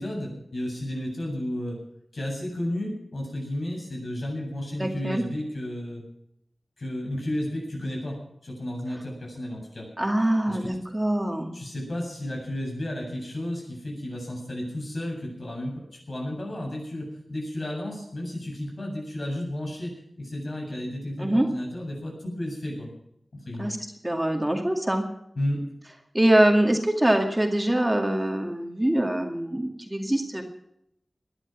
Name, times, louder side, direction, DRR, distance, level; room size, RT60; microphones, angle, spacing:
voice 1, 0.0-1.8 2.1-6.0 6.8-9.9 10.5-10.7 11.5-22.9 23.3-23.7 25.3-25.6, left 1 dB, 65° left, 0 dB, 7.9 m, -33 dB
voice 2, 4.8-5.2 10.0-11.5 21.2-21.5 23.6-23.8 24.0-25.1 26.1-30.4, right 1 dB, 15° right, 3 dB, 2.2 m, -23 dB
19.5 x 11.5 x 6.2 m, 0.75 s
wide cardioid pair, 85°, 0 cm